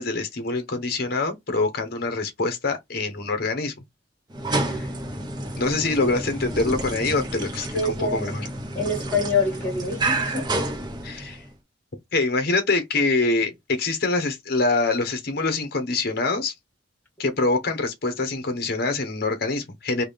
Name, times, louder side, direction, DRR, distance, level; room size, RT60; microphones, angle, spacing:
voice 1, 0.0-3.7 4.5-4.9 5.6-8.5 11.0-11.4 12.1-16.5 17.2-20.0, left 3 dB, 55° left, 1.0 m, -25 dB
sound 1, 4.3-11.5, right 2 dB, 25° right, 0.7 m, -30 dB
voice 2, 7.7-8.3 8.8-10.5, left 3 dB, 10° left, 2.1 m, -26 dB
3.6 x 2.3 x 3.3 m
head